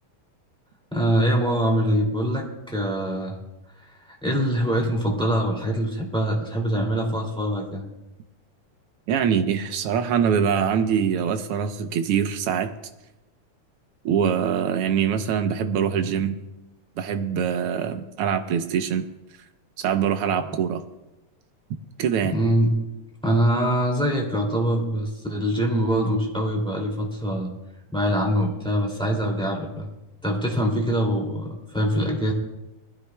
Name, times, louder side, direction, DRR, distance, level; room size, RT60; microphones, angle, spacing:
voice 1, 0.9-3.4 4.1-7.8 22.2-22.9 23.2-27.5 27.9-29.9 30.2-32.3, equal, ahead, 0 dB, 1.9 m, -24 dB
voice 2, 9.1-12.7 14.0-16.4 17.0-19.0 19.8-20.8 22.0-22.4, right 8 dB, 80° right, 7 dB, 1.3 m, -23 dB
21.0 x 15.0 x 2.3 m, 0.97 s
omnidirectional pair, 3.6 m